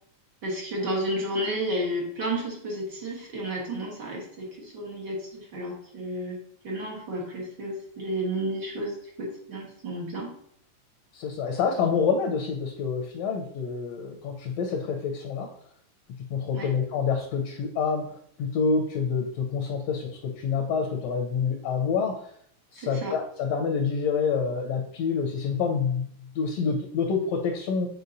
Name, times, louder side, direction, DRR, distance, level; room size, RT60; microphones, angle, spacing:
voice 1, 0.4-6.4 6.6-10.3 16.5-16.7 22.8-23.2, right 1 dB, 50° right, -3 dB, 1.3 m, -32 dB
voice 2, 11.1-15.5 16.3-22.3 22.7-26.1 26.3-27.9, left 5 dB, 75° left, 2 dB, 1.6 m, -27 dB
8.2 x 4.5 x 2.6 m, 0.66 s
omnidirectional pair, 3.4 m